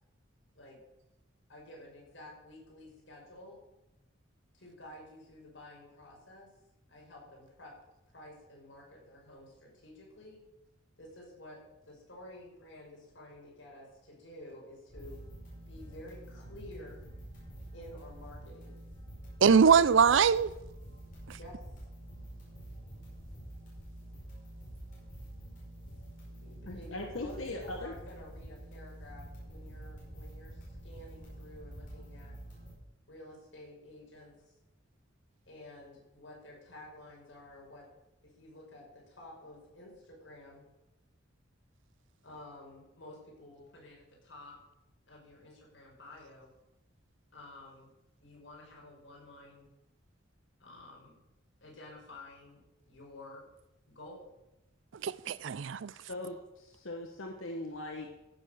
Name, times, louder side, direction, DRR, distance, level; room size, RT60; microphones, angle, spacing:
voice 1, 1.5-3.6 4.5-6.5 6.9-7.7 8.1-10.4 11.0-15.2 15.7-17.0 17.7-18.8 19.5-19.8 21.4-21.6 26.4-32.4 33.1-34.5 35.5-37.9 38.2-40.6 42.2-44.6 45.1-46.5 47.3-47.9 48.2-49.7 50.6-51.2 51.6-53.5 54.0-54.3, left 1 dB, 65° left, 5.5 m, -51 dB
sound 1, 14.9-32.7, right 1 dB, 45° left, 5.4 m, -47 dB
voice 2, 19.4-20.5 21.3-21.4 55.0-55.9, right 6 dB, 65° right, 0.4 m, -23 dB
voice 3, 26.6-27.9 56.1-58.1, left 2 dB, 85° left, 1.2 m, -40 dB
15.0 x 7.1 x 6.4 m
head